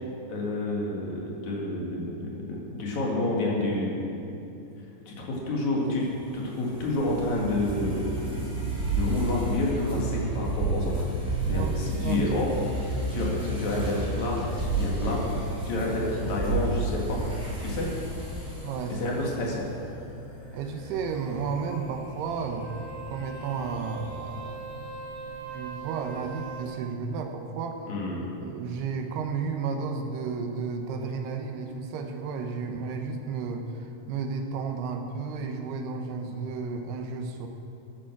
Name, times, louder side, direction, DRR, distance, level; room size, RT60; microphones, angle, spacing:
voice 1, 0.3-3.9 4.3-4.4 5.1-6.1 6.3-11.0 11.5-12.5 12.8-15.3 15.6-17.2 17.6-17.9 18.9-19.6 27.9-28.3, left 2 dB, 50° left, -3 dB, 3.0 m, -29 dB
sound 1, 6.0-19.4, right 2 dB, ahead, 3.0 m, -31 dB
voice 2, 11.5-12.4 18.6-19.0 20.5-22.7 23.1-24.6 25.5-27.8 28.2-37.5, right 5 dB, 85° right, 5 dB, 3.0 m, -33 dB
sound 2, 13.0-26.7, left 1 dB, 75° left, 4.5 m, -44 dB
Wind instrument woodwind instrument, 22.5-26.8, right 6 dB, 65° right, 2.5 m, -41 dB
14.5 x 9.1 x 6.0 m, 2.8 s
omnidirectional pair, 4.6 m